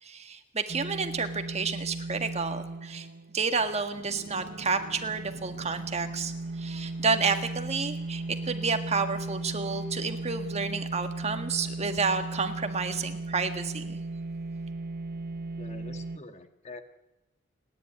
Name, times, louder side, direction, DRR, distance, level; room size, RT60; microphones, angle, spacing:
voice 1, 0.0-3.1 3.3-14.0, right 4 dB, 35° right, 7 dB, 1.8 m, -30 dB
sound 1, 0.7-16.2, right 2 dB, 55° right, 0.8 m, -37 dB
voice 2, 15.6-16.8, left 2 dB, 35° left, 8 dB, 1.7 m, -45 dB
29.5 x 11.0 x 9.8 m, 0.91 s
head